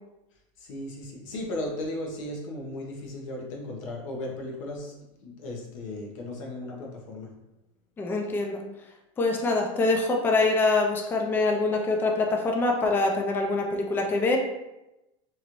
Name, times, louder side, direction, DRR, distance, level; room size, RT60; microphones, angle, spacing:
voice 1, 0.7-4.9 5.2-7.3, left 1 dB, 90° left, 0 dB, 0.8 m, -36 dB
voice 2, 8.0-8.6 9.2-14.4, left 3 dB, 15° left, 1 dB, 0.3 m, -24 dB
3.0 x 2.5 x 2.9 m, 0.95 s
supercardioid pair, 135°, 16 cm